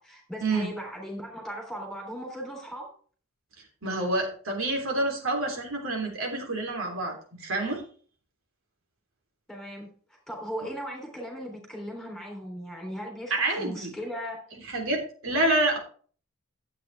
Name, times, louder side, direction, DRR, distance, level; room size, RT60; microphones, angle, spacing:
voice 1, 0.0-2.9 9.5-9.9 10.3-14.4, equal, ahead, 0 dB, 3.2 m, -37 dB
voice 2, 3.8-7.8 13.3-13.9 14.5-15.8, right 2 dB, 70° right, 1 dB, 3.4 m, -28 dB
12.0 x 8.3 x 3.4 m, 0.43 s
head